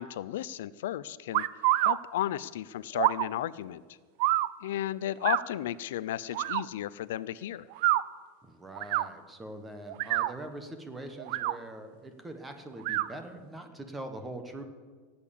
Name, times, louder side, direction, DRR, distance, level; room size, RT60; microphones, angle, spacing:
voice 1, 0.0-1.4 1.8-3.8 4.6-7.7, left 12 dB, 80° left, 17 dB, 0.4 m, -34 dB
sound 1, 1.3-2.0 2.9-3.3 4.2-4.5 5.2-5.4 6.3-6.6 7.7-8.0 8.8-9.1 9.9-10.3 11.2-11.5 12.8-13.1, right 16 dB, 45° right, 0.4 m, -26 dB
voice 2, 8.4-14.6, right 1 dB, 5° right, 7 dB, 1.0 m, -43 dB
16.5 x 8.8 x 7.2 m, 1.5 s
supercardioid pair, 180°, 0 cm